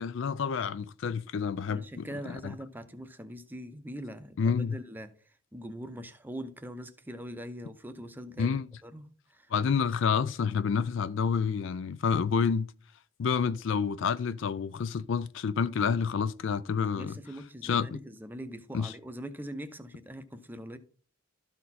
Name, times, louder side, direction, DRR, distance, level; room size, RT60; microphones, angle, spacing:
voice 1, 0.0-2.5 4.4-4.8 8.4-8.7 9.5-12.7 13.2-17.1 17.6-18.0 18.7-18.9, left 6 dB, 60° left, 0.4 m, -29 dB
voice 2, 1.7-8.6 8.8-9.5 16.9-20.8, equal, 10° right, 0.6 m, -42 dB
12.5 x 4.3 x 4.2 m
head